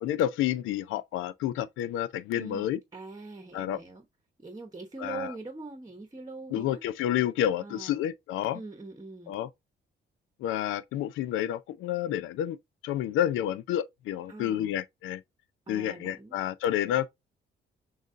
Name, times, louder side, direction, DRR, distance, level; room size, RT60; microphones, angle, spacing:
voice 1, 0.0-2.8 3.5-3.8 5.0-5.3 6.5-8.6 9.3-9.5 10.4-12.6 12.8-15.2 15.7-17.1, left 11 dB, 90° left, 0.5 m, -29 dB
voice 2, 2.3-4.1 4.4-6.8 7.6-8.1 8.5-9.3 14.3-14.7 15.7-16.4, right 3 dB, 20° right, 1.0 m, -43 dB
6.3 x 2.4 x 2.5 m
cardioid pair, 90°, 20 cm